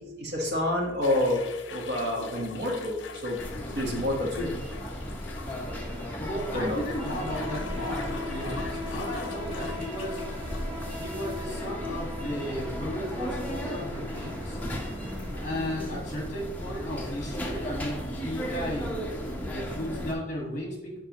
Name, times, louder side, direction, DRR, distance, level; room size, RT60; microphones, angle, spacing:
voice 1, 0.2-3.0 3.2-3.4 3.7-4.5 6.5-6.8, left 1 dB, 65° right, 0 dB, 1.3 m, -28 dB
sound 1, 1.0-11.6, left 4 dB, 80° left, 0.5 m, -43 dB
sound 2, 3.4-20.1, equal, 10° left, 0.7 m, -35 dB
sound 3, 5.5-15.4, left 2 dB, 35° right, 2.4 m, -40 dB
voice 2, 6.2-10.2 10.9-14.6 15.4-18.9 19.5-21.0, equal, 40° left, -1 dB, 1.6 m, -35 dB
7.0 x 5.4 x 3.0 m, 1.0 s
head